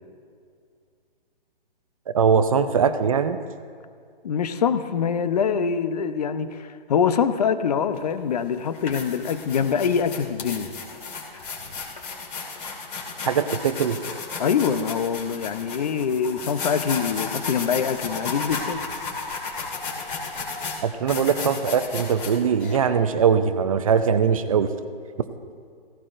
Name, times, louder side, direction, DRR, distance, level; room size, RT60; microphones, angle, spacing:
voice 1, 2.1-3.4 13.3-14.0 20.8-24.7, right 6 dB, 35° right, 11 dB, 0.5 m, -21 dB
voice 2, 4.2-10.7 14.4-18.8, left 7 dB, 40° left, 11 dB, 0.7 m, -24 dB
sound 1, 8.0-8.1 8.6-22.8, left 4 dB, 60° left, 3.2 m, -33 dB
16.5 x 16.0 x 2.6 m, 2.2 s
hypercardioid pair, 150°, 30 cm